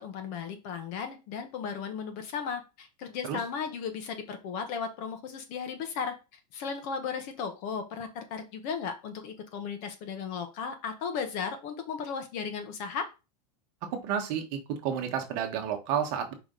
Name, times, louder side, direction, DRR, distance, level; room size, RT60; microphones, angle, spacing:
voice 1, 0.0-6.1 6.5-13.1, left 6 dB, 40° left, 7 dB, 1.1 m, -35 dB
voice 2, 13.9-16.3, right 8 dB, 40° right, 5 dB, 1.3 m, -31 dB
5.0 x 4.8 x 3.9 m, 0.29 s
supercardioid pair, 165°, 21 cm